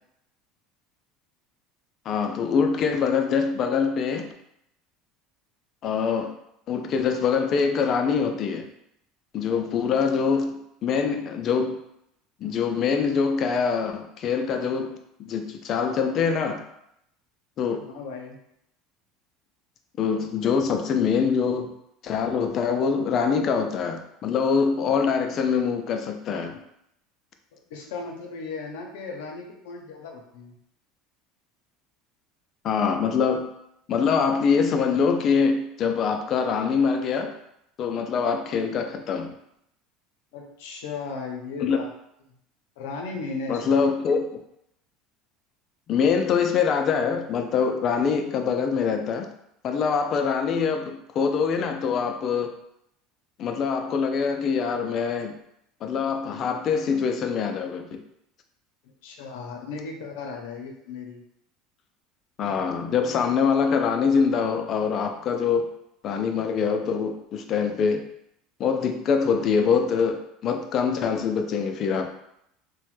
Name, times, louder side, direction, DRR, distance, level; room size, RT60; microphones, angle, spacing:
voice 1, 2.1-4.3 5.8-6.3 6.7-8.7 9.3-11.8 12.4-14.9 15.2-16.6 17.6-17.9 20.0-21.7 22.0-26.6 32.6-33.5 33.9-37.3 37.8-39.4 41.6-41.8 43.5-44.4 45.9-49.3 49.6-52.5 53.4-55.3 55.8-58.0 62.4-65.7 66.0-68.0 68.6-72.1, left 6 dB, 40° left, 5 dB, 0.3 m, -24 dB
voice 2, 17.8-18.4 27.7-30.6 40.3-41.9 42.8-43.8 59.0-61.2, left 4 dB, 85° left, 2 dB, 0.6 m, -36 dB
3.0 x 2.1 x 3.0 m, 0.78 s
supercardioid pair, 130°, 0 cm